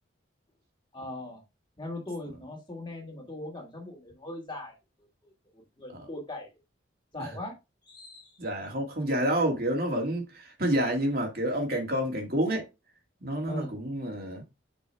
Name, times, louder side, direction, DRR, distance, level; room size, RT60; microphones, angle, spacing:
voice 1, 0.9-1.4 1.8-4.7 5.2-6.5 7.1-7.6 7.9-8.4 13.5-13.7, left 1 dB, 25° left, 2.4 m, -40 dB
voice 2, 8.4-12.7 13.2-14.4, right 1 dB, 50° right, 2.3 m, -29 dB
6.3 x 5.4 x 3.4 m
head